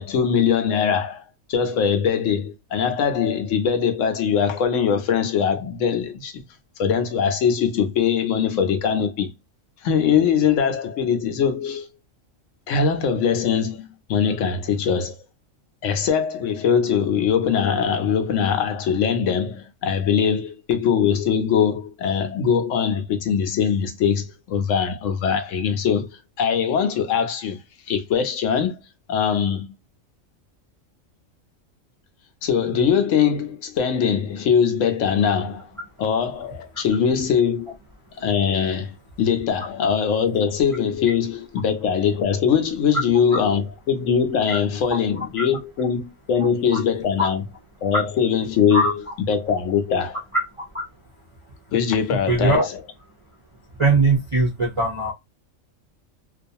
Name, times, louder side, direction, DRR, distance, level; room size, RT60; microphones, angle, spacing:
voice 1, 0.0-6.4 6.8-9.3 9.8-11.9 12.7-15.2 15.8-27.6 27.9-28.8 29.1-29.7 32.4-35.7 36.0-37.7 38.2-47.4 47.8-48.9 49.3-50.2 51.7-52.6, left 7 dB, 75° left, 0.9 m, -22 dB
voice 2, 48.7-49.1 50.3-50.8 52.1-52.6 53.8-55.1, right 2 dB, 40° right, 0.4 m, -21 dB
2.4 x 2.3 x 2.6 m
omnidirectional pair, 1.3 m